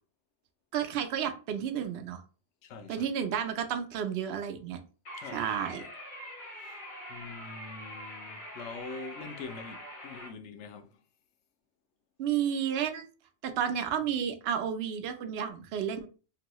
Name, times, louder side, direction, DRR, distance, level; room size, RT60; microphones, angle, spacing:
voice 1, 0.7-2.2 2.9-4.8 5.3-5.8 12.2-13.1 13.4-16.1, right 8 dB, 70° right, 0.8 m, -31 dB
voice 2, 2.6-3.1 5.2-5.5 6.5-6.8 7.1-11.0, left 4 dB, 85° left, 0.9 m, -44 dB
sound 1, 5.0-10.3, left 1 dB, 45° left, 1.1 m, -44 dB
3.0 x 2.6 x 2.9 m
omnidirectional pair, 1.2 m